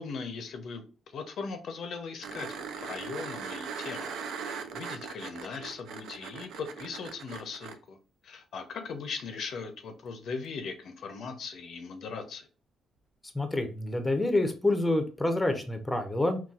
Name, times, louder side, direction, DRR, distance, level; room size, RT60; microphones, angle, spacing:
voice 1, 0.0-8.0 8.2-12.5, left 5 dB, 65° left, 7 dB, 0.5 m, -39 dB
sound 1, 2.2-7.8 10.4-10.5, right 6 dB, 80° right, 0.4 m, -39 dB
voice 2, 13.3-16.4, left 2 dB, 10° left, 7 dB, 0.5 m, -27 dB
3.9 x 2.2 x 2.3 m, 0.35 s
cardioid pair, 90°, 0 cm